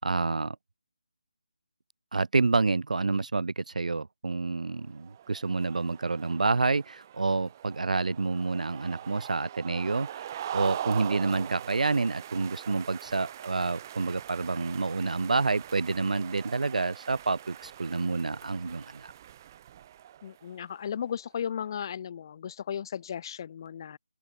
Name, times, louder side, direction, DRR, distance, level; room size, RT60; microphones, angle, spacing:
voice 1, 0.0-0.6 2.1-19.1, right 3 dB, 70° right, 0.3 m, -28 dB
sound 1, 4.9-20.6, right 11 dB, 25° right, 0.9 m, -42 dB
voice 2, 20.2-24.0, left 8 dB, 30° left, 2.2 m, -35 dB
open air
figure-of-eight pair, 155°, 4 cm